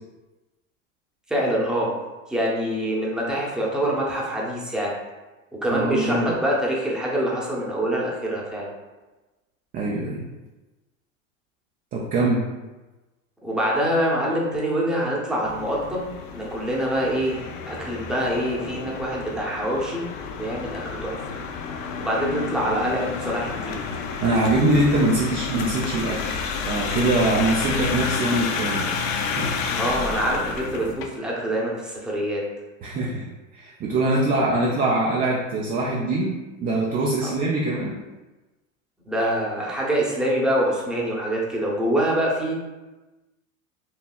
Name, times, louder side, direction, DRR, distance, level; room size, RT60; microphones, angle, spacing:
voice 1, 1.3-2.0 2.3-5.0 5.6-8.7 13.4-17.4 17.7-20.0 20.4-21.3 21.9-23.8 29.7-32.4 37.2-37.3 39.1-42.5, right 1 dB, ahead, -4 dB, 0.7 m, -25 dB
voice 2, 5.7-6.3 9.7-10.2 11.9-12.5 24.2-26.4 26.6-28.9 29.2-29.6 32.8-33.3 33.5-38.0, right 2 dB, 25° right, -3 dB, 0.3 m, -23 dB
sound 1, 15.4-31.1, left 5 dB, 50° left, 0.5 m, -30 dB
4.3 x 2.8 x 2.3 m, 1.1 s
hypercardioid pair, 95°, 41 cm